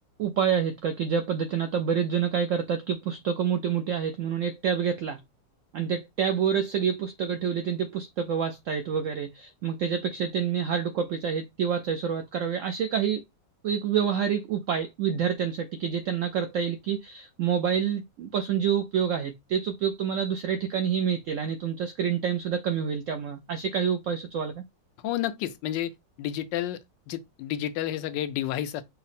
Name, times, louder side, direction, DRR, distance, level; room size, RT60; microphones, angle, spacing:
voice 1, 0.2-5.2 5.7-13.2 13.6-24.5, right 7 dB, 85° right, 0.7 m, -27 dB
voice 2, 25.0-25.9 26.2-26.8 27.1-28.8, left 12 dB, 85° left, 1.3 m, -30 dB
5.5 x 2.0 x 4.0 m
omnidirectional pair, 1.9 m